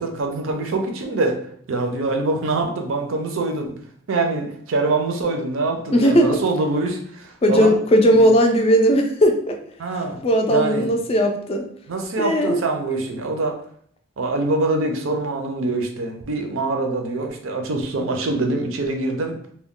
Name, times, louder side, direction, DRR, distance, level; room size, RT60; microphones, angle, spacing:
voice 1, 0.0-1.4 1.7-3.7 4.1-7.8 8.1-8.3 9.8-10.2 10.5-10.9 11.9-13.6 14.2-19.3, right 2 dB, 70° right, 3 dB, 0.5 m, -24 dB
voice 2, 5.9-6.4 7.4-9.6 10.2-11.6 12.2-12.6, equal, 30° left, 3 dB, 0.3 m, -17 dB
2.2 x 2.1 x 3.6 m, 0.63 s
head